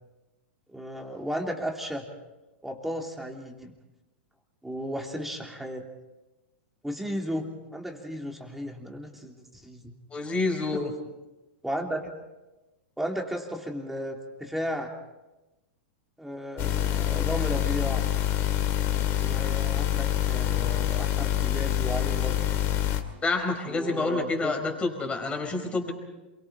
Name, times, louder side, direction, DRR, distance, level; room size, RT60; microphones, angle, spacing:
voice 1, 0.7-2.1 2.6-3.7 4.6-5.8 6.8-9.9 10.7-10.8 11.6-12.1 13.0-14.9 16.2-18.0 19.2-22.4 23.7-24.5, equal, 5° right, 1 dB, 3.3 m, -34 dB
voice 2, 10.1-10.9 23.2-25.9, left 3 dB, 20° left, 4 dB, 5.0 m, -28 dB
sound 1, 16.6-23.0, left 12 dB, 45° left, 2.7 m, -26 dB
28.0 x 23.5 x 4.4 m, 1.1 s
hypercardioid pair, 115°, 6 cm